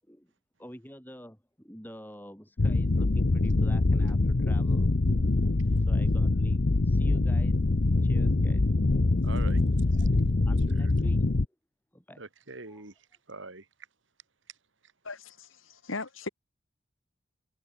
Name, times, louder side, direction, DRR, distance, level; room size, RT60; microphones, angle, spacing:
voice 1, 0.6-4.9 5.9-7.6 8.0-8.7 10.5-11.5 11.9-12.2 12.7-12.8, equal, 10° left, 5.7 m, -47 dB
sound 1, 2.6-11.4, left 2 dB, 55° left, 0.7 m, -24 dB
voice 2, 9.2-9.6 9.9-10.1 10.7-10.9 12.2-13.7, right 3 dB, 70° right, 2.7 m, -44 dB
voice 3, 15.0-16.3, left 3 dB, 85° left, 2.9 m, -38 dB
head